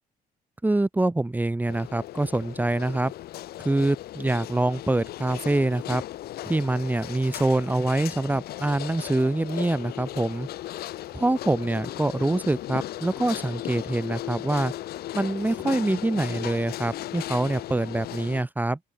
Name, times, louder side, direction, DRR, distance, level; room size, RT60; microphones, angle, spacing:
voice 1, 0.6-3.1 3.6-6.0 6.4-10.5 11.1-14.7 15.1-18.8, right 2 dB, 10° right, 1.7 m, -25 dB
sound 1, 1.7-18.4, left 14 dB, 80° left, 3.0 m, -36 dB
open air
cardioid pair, 120°, 16 cm